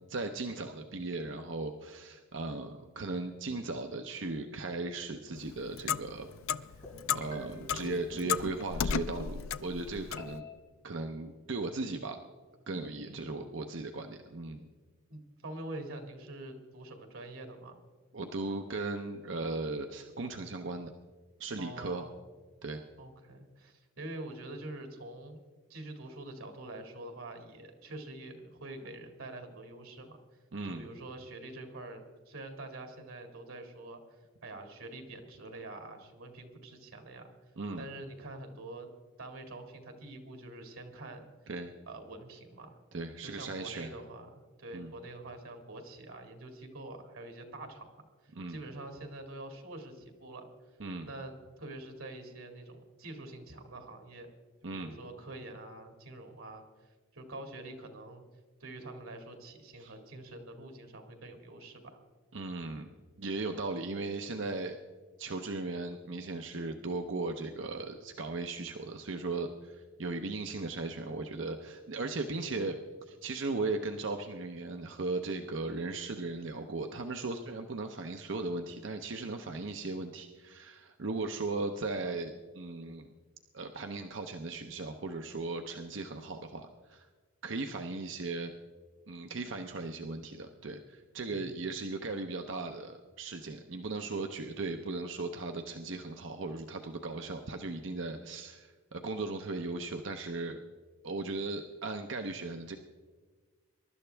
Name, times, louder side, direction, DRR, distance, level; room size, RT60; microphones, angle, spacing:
voice 1, 0.1-6.3 7.1-10.4 10.8-12.2 12.7-14.7 18.1-20.9 21.4-22.0 22.6-22.8 30.5-30.8 37.6-37.8 41.5-41.7 42.9-43.9 44.7-44.9 48.3-48.6 50.8-51.1 54.6-55.0 59.8-59.9 62.3-62.9 63.2-64.8 65.2-72.8 73.1-83.1 83.5-87.1 87.4-88.5 89.1-100.6 101.0-102.8, right 3 dB, 65° right, 5 dB, 0.7 m, -37 dB
Clock, 5.3-10.4, left 7 dB, 80° left, 0.4 m, -35 dB
sound 1, 6.8-9.0 10.2-10.5, left 2 dB, 40° left, 3.7 m, -49 dB
voice 2, 15.1-17.7 21.6-22.3 23.0-25.4 25.7-30.2 30.7-34.0 34.4-37.3 37.8-38.9 39.2-41.3 41.9-42.8 43.2-50.5 51.0-54.3 54.7-56.6 57.1-58.2 58.6-62.0 91.3-91.6, right 2 dB, 85° right, 5 dB, 2.1 m, -46 dB
22.5 x 12.0 x 3.4 m, 1.4 s
head